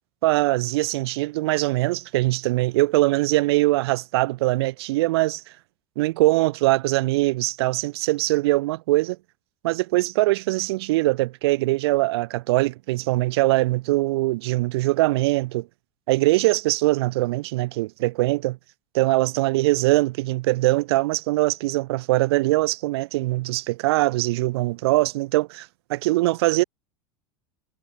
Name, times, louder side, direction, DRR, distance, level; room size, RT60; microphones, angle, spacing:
voice 1, 0.2-5.4 6.0-9.2 9.6-15.7 16.1-18.6 18.9-26.6, right 19 dB, 75° right, 6.6 m, -22 dB
supercardioid pair, 125°, 13 cm